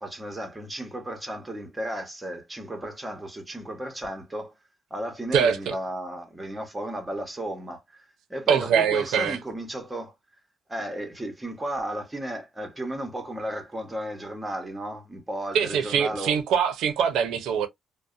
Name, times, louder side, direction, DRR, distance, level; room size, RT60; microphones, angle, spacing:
voice 1, 0.0-4.5 4.9-8.0 8.3-10.1 10.7-16.3, right 1 dB, 15° right, 0.9 m, -34 dB
voice 2, 5.3-5.7 8.5-9.4 15.5-17.7, right 7 dB, 85° right, 0.6 m, -23 dB
2.6 x 2.1 x 2.4 m
cardioid pair, 90°, 0 cm